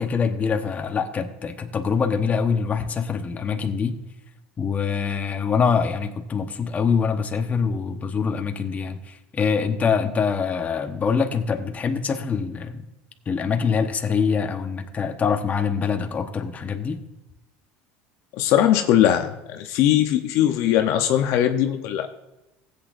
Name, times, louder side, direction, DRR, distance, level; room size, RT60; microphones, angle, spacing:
voice 1, 0.0-4.0 4.6-12.8 13.3-17.0, left 6 dB, 30° left, 6 dB, 1.1 m, -24 dB
voice 2, 18.4-22.1, left 11 dB, 65° left, 6 dB, 0.8 m, -20 dB
16.0 x 8.5 x 2.6 m, 0.99 s
supercardioid pair, 100°, 5 cm